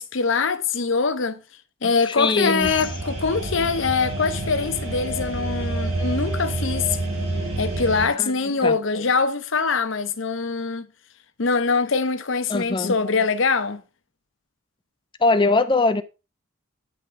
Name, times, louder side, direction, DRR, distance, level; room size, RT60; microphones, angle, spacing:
voice 1, 0.0-1.4 1.8-7.0 7.6-10.9 11.4-13.8, left 4 dB, 65° left, 0.7 m, -23 dB
voice 2, 2.1-2.7 8.2-8.3 8.6-8.8 12.5-13.0 15.2-16.0, left 3 dB, 25° left, 0.5 m, -21 dB
sound 1, 2.6-8.1, right 2 dB, 85° right, 3.4 m, -28 dB
9.3 x 3.6 x 4.4 m
head